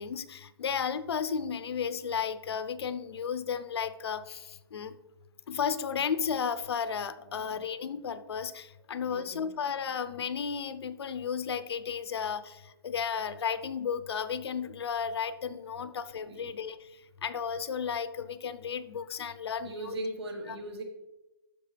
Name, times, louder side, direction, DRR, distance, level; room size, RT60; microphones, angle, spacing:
voice 1, 0.0-4.9 5.5-19.9 20.5-20.6, left 7 dB, 80° left, 12 dB, 0.7 m, -34 dB
voice 2, 9.1-9.5 16.3-16.6 19.6-20.8, right 1 dB, 90° right, 3 dB, 2.1 m, -39 dB
13.0 x 5.3 x 3.4 m, 0.96 s
hypercardioid pair, 175°, 13 cm